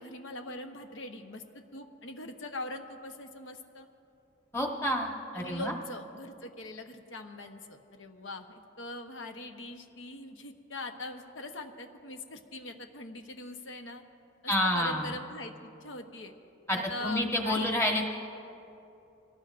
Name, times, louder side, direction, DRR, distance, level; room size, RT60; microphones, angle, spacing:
voice 1, 0.0-3.9 5.3-14.0 14.4-16.3 16.7-17.7, left 2 dB, 70° left, 5 dB, 1.0 m, -42 dB
voice 2, 4.5-5.7 14.5-15.1 16.7-18.0, left 1 dB, 15° left, 0 dB, 1.3 m, -29 dB
24.0 x 18.0 x 2.6 m, 2.7 s
head